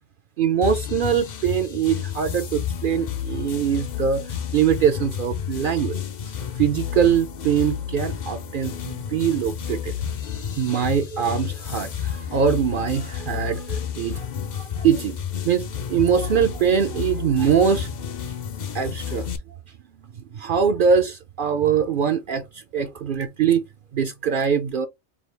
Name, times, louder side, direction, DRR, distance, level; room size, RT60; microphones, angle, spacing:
voice 1, 0.4-4.2 4.5-6.0 6.6-9.9 10.6-14.3 14.5-15.2 15.4-17.9 18.7-19.3 20.3-23.6 23.9-24.9, right 7 dB, 60° right, 0.6 m, -22 dB
sound 1, 0.6-19.4, left 8 dB, 50° left, 0.6 m, -31 dB
4.8 x 2.3 x 3.3 m
omnidirectional pair, 1.2 m